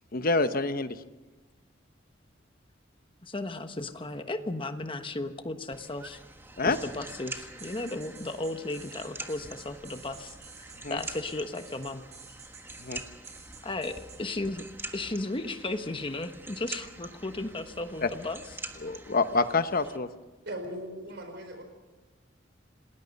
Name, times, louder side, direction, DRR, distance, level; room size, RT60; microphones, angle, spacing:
voice 1, 0.1-1.0 6.6-6.8 10.8-11.0 12.8-13.0 18.0-18.1 18.8-20.1, left 3 dB, 50° left, 10 dB, 1.0 m, -27 dB
voice 2, 3.2-6.2 6.6-10.3 10.9-12.0 13.6-14.7 14.9-18.4, left 2 dB, 30° left, 8 dB, 1.2 m, -35 dB
sound 1, 5.7-20.0, right 2 dB, 10° right, 1.4 m, -45 dB
sound 2, 7.6-14.2, right 5 dB, 35° right, 6.5 m, -51 dB
voice 3, 20.5-21.6, right 1 dB, 65° right, 6 dB, 4.4 m, -38 dB
28.5 x 20.0 x 5.4 m, 1.2 s
head